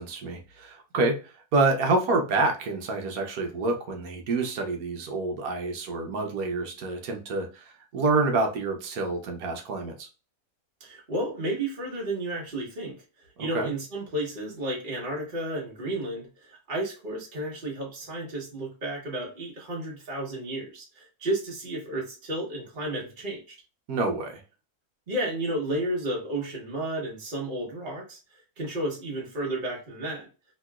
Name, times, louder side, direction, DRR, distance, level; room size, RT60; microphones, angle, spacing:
voice 1, 0.0-10.1 13.4-13.7 23.9-24.4, right 3 dB, 70° right, 3 dB, 1.2 m, -27 dB
voice 2, 10.8-23.5 25.1-28.2 28.6-30.3, right 1 dB, 35° right, -2 dB, 1.2 m, -32 dB
3.1 x 2.9 x 2.3 m, 0.33 s
omnidirectional pair, 1.6 m